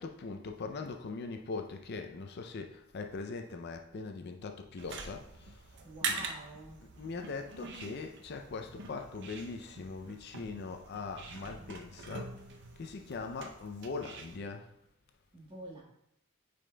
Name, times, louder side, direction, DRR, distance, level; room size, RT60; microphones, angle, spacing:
voice 1, 0.0-6.3 6.8-12.3 12.8-14.7, left 4 dB, 50° left, 0.4 m, -41 dB
sound 1, 4.8-14.4, right 4 dB, 55° right, 0.6 m, -44 dB
voice 2, 5.8-6.9 15.3-15.8, right 1 dB, 25° right, 1.5 m, -47 dB
8.9 x 5.0 x 2.2 m
head